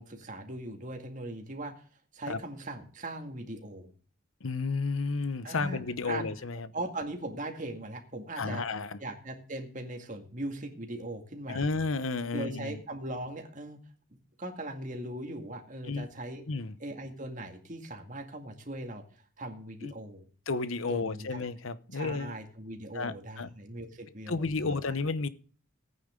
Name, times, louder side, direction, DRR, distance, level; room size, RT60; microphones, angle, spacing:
voice 1, 0.0-1.7 2.1-3.9 5.4-6.2 6.7-8.6 9.0-11.7 12.3-13.8 14.4-16.4 16.8-19.0 19.4-20.2 20.9-21.5 21.9-24.8, right 1 dB, 40° right, 2.1 m, -39 dB
voice 2, 4.4-6.7 8.4-9.0 11.5-12.8 15.9-16.1 16.5-16.7 19.8-19.9 20.5-22.3 22.9-23.5 24.3-25.3, left 3 dB, 75° left, 0.8 m, -32 dB
15.0 x 9.3 x 3.8 m
head